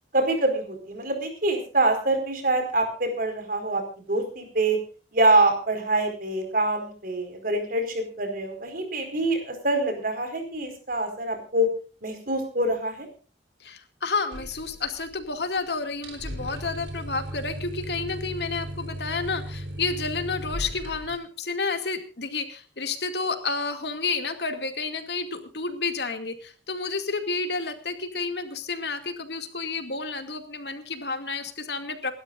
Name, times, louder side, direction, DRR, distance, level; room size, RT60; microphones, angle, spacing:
voice 1, 0.1-3.8 4.1-4.8 5.1-11.7 12.0-13.1, right 2 dB, 50° right, 6 dB, 4.6 m, -25 dB
voice 2, 13.6-32.1, left 4 dB, 70° left, 7 dB, 2.3 m, -30 dB
sound 1, 14.3-15.3 15.6-15.7 15.9-21.2, equal, 80° right, 3.6 m, -36 dB
28.0 x 12.5 x 2.5 m, 0.36 s
head